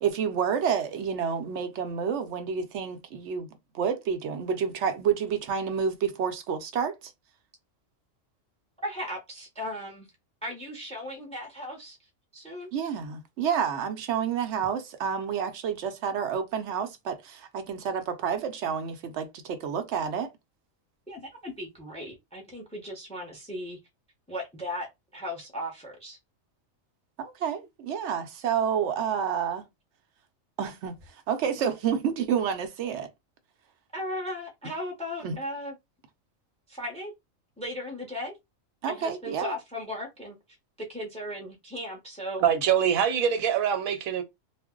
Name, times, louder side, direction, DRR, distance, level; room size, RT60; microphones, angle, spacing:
voice 1, 0.0-3.5 3.7-7.1 12.7-20.3 27.2-29.6 30.6-31.0 31.3-33.1 35.2-35.4 38.8-39.5, right 7 dB, 65° right, 0.8 m, -29 dB
voice 2, 8.8-10.1 10.4-12.0 12.3-12.7 21.1-23.8 24.3-24.9 25.1-26.2 33.9-35.7 36.7-37.1 37.6-38.4 38.9-40.4 40.8-42.4, left 1 dB, 5° left, 0.5 m, -36 dB
voice 3, 42.4-44.2, right 8 dB, 90° right, 1.1 m, -24 dB
2.4 x 2.0 x 3.6 m
omnidirectional pair, 1.4 m